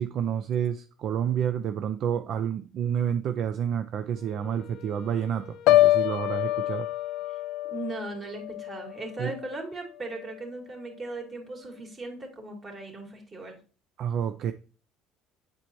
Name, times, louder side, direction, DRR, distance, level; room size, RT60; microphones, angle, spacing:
voice 1, 0.0-6.9 9.2-9.3 14.0-14.5, right 9 dB, 60° right, 0.4 m, -29 dB
Wind instrument woodwind instrument, 4.1-8.5, left 8 dB, 50° left, 0.8 m, -49 dB
Piano, 5.7-9.6 10.0-10.4, left 16 dB, 75° left, 0.3 m, -26 dB
voice 2, 7.7-13.6, right 2 dB, 35° right, 2.5 m, -38 dB
8.2 x 4.3 x 3.0 m
supercardioid pair, 85°, 0 cm